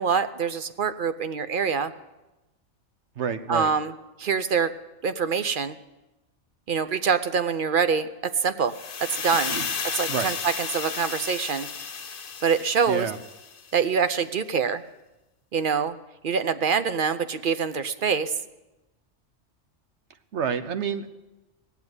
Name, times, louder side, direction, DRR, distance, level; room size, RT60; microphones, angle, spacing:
voice 1, 0.0-1.9 3.5-3.9 4.2-4.7 5.0-5.8 6.7-8.1 8.3-8.7 9.2-9.5 9.9-11.7 12.4-13.1 13.7-14.8 15.5-16.0 16.2-18.3, right 6 dB, 55° right, 11 dB, 0.7 m, -25 dB
voice 2, 3.2-3.7 9.5-9.7 10.1-10.3 12.9-13.2 20.3-21.1, right 7 dB, 75° right, 10 dB, 1.1 m, -28 dB
sound 1, 8.7-13.7, left 6 dB, 50° left, 1.0 m, -33 dB
17.5 x 7.2 x 9.6 m, 1.0 s
omnidirectional pair, 1.2 m